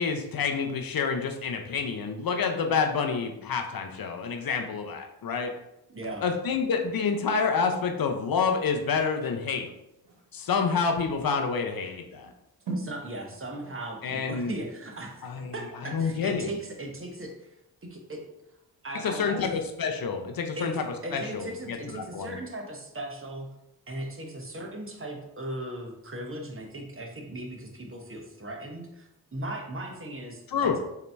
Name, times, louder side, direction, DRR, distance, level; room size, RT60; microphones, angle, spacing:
voice 1, 0.0-5.5 6.2-9.7 10.3-12.3 14.0-14.6 15.2-15.5 15.8-16.5 19.0-20.9 21.1-22.4 30.5-30.8, left 5 dB, 55° left, 4 dB, 0.6 m, -28 dB
voice 2, 5.9-6.2 12.7-17.5 17.8-18.2 18.8-19.5 20.6-20.8 21.0-23.5 23.9-30.8, right 1 dB, 30° right, 2 dB, 0.9 m, -38 dB
sound 1, 8.3-16.8 17.2-17.3, right 2 dB, 70° right, 1.3 m, -44 dB
3.8 x 2.8 x 3.3 m, 0.85 s
supercardioid pair, 40°, 44 cm